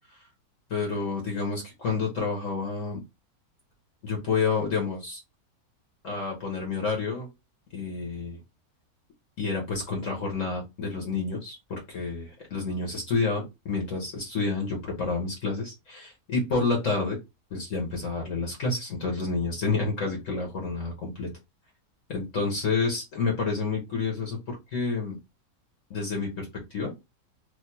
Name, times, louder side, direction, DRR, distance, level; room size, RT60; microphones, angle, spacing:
voice 1, 0.7-3.0 4.0-5.2 6.0-7.3 7.7-8.4 9.4-17.2 17.5-21.3 22.1-25.2 25.9-26.9, left 4 dB, 55° left, 1 dB, 1.4 m, -29 dB
3.2 x 2.8 x 2.7 m, 0.22 s
omnidirectional pair, 1.6 m